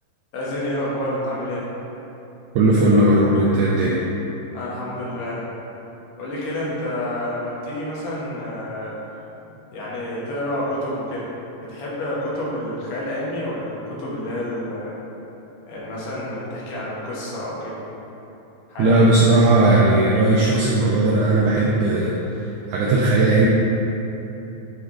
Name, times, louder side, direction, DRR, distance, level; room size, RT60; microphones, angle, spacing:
voice 1, 0.3-1.7 4.5-5.5 6.2-9.0 9.7-11.3 11.6-14.9 15.6-17.8 18.7-19.1, left 1 dB, 70° left, -6 dB, 2.5 m, -29 dB
voice 2, 2.6-4.0 18.8-23.5, right 2 dB, 80° right, -4 dB, 1.8 m, -17 dB
9.7 x 3.4 x 3.6 m, 3.0 s
omnidirectional pair, 4.2 m